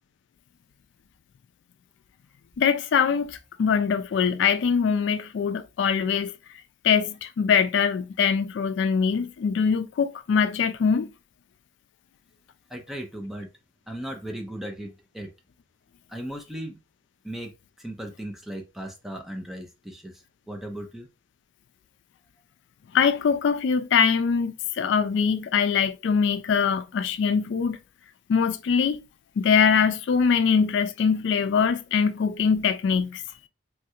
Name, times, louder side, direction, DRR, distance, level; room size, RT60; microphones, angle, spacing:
voice 1, 2.6-6.3 6.8-11.1 22.9-27.8 28.3-29.0 29.4-33.2, left 6 dB, 65° left, 0.3 m, -23 dB
voice 2, 12.7-13.5 13.9-15.3 16.1-16.8 17.2-17.5 17.8-20.1 20.5-21.1, right 1 dB, ahead, 0.5 m, -36 dB
3.2 x 2.4 x 2.7 m
head